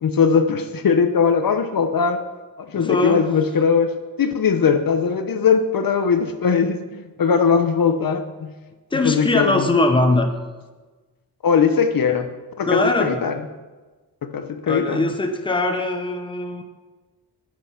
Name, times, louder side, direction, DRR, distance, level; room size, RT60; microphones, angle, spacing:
voice 1, 0.0-2.2 2.6-8.5 9.0-9.8 11.4-12.3 12.6-13.4 14.2-15.1, left 6 dB, 60° left, 8 dB, 0.8 m, -20 dB
voice 2, 2.7-3.3 8.9-10.3 12.6-13.2 14.7-16.6, left 2 dB, 15° left, 5 dB, 0.9 m, -21 dB
9.5 x 8.7 x 5.8 m, 1.3 s
wide cardioid pair, 135°, 39 cm